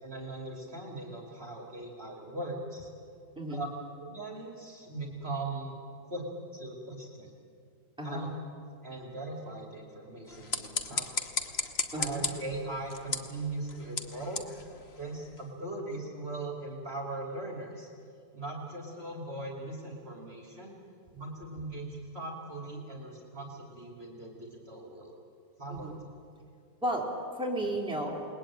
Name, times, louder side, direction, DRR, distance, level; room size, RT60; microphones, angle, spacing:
voice 1, 0.0-2.9 3.5-3.7 4.0-5.8 6.0-6.2 6.5-7.3 8.0-8.3 8.8-11.3 11.9-14.5 15.0-17.9 18.3-20.7 21.1-25.1 25.6-25.9, right 2 dB, 35° right, -1 dB, 3.1 m, -39 dB
sound 1, 10.2-15.5, left 4 dB, 40° left, 1.4 m, -36 dB
voice 2, 11.9-12.2 25.7-26.0 26.8-28.3, right 1 dB, 5° right, -3 dB, 3.8 m, -33 dB
28.5 x 20.5 x 8.9 m, 2.4 s
omnidirectional pair, 1.8 m